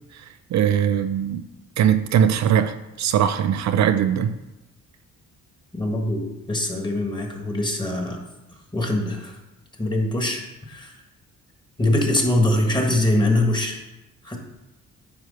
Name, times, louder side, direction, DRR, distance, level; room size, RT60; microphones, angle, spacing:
voice 1, 0.5-1.4 1.8-4.3, right 9 dB, 65° right, 9 dB, 0.5 m, -20 dB
voice 2, 5.7-8.2 8.7-9.4 9.8-10.9 11.8-13.8 14.2-14.4, left 1 dB, 15° left, 2 dB, 1.6 m, -23 dB
9.3 x 3.1 x 6.5 m, 0.97 s
cardioid pair, 90°, 30 cm